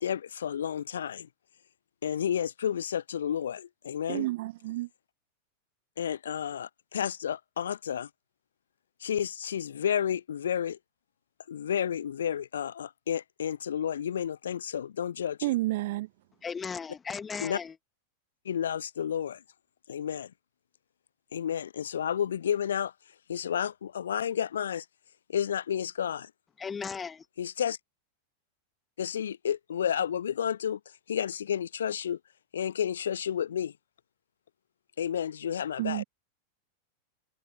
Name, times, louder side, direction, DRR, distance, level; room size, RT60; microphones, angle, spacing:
voice 1, 0.0-1.3 2.0-4.3 6.0-8.1 9.0-10.8 11.5-15.5 17.4-17.6 18.4-19.4 19.9-20.3 21.3-22.9 23.3-24.9 25.3-26.3 27.4-27.8 29.0-30.8 31.1-32.2 32.5-33.7 35.0-36.0, left 9 dB, 65° left, 0.4 m, -31 dB
voice 2, 4.1-4.9 15.4-16.1 35.8-36.0, right 18 dB, 50° right, 1.2 m, -30 dB
voice 3, 16.4-17.8 26.6-27.2, left 6 dB, 15° left, 1.9 m, -36 dB
figure-of-eight pair, 90°, 0 cm